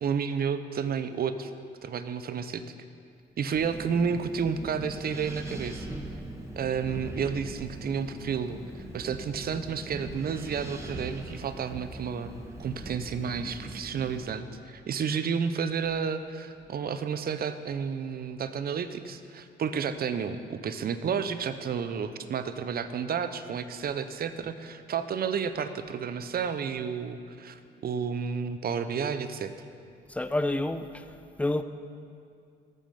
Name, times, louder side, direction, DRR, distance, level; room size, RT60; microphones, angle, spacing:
voice 1, 0.0-1.5 1.8-2.6 3.4-5.9 6.6-8.6 8.9-12.3 12.6-29.5, right 6 dB, 50° right, 11 dB, 0.7 m, -31 dB
Wind, 3.5-14.3, right 1 dB, 15° right, 1.3 m, -41 dB
voice 2, 30.1-31.1 31.4-31.6, left 2 dB, 5° left, 9 dB, 0.6 m, -29 dB
13.0 x 7.3 x 5.5 m, 2.3 s
cardioid pair, 90°, 20 cm